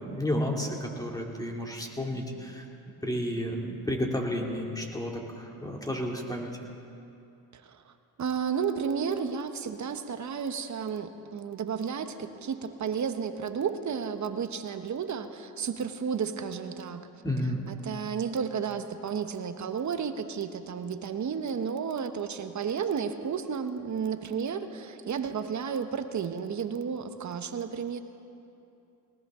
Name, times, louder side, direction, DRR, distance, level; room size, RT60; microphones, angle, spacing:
voice 1, 0.0-2.6 3.0-6.5 17.2-17.6, equal, 10° left, 0 dB, 2.7 m, -31 dB
voice 2, 7.5-17.0 17.4-28.0, right 6 dB, 45° right, 8 dB, 1.2 m, -32 dB
19.5 x 19.0 x 3.8 m, 2.7 s
supercardioid pair, 75°, 41 cm